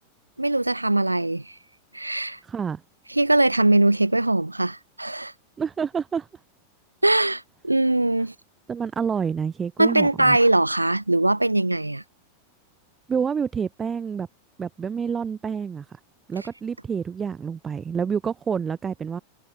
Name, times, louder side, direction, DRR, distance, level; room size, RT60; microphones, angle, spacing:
voice 1, 0.4-1.4 1.9-2.4 3.1-5.3 7.0-8.3 9.8-12.0, right 2 dB, 85° right, 0.6 m, -21 dB
voice 2, 2.4-2.8 5.6-6.3 8.7-10.4 13.1-14.3 14.6-15.9 16.3-19.2, right 6 dB, 20° right, 0.5 m, -28 dB
figure-of-eight pair, 90°, 0 cm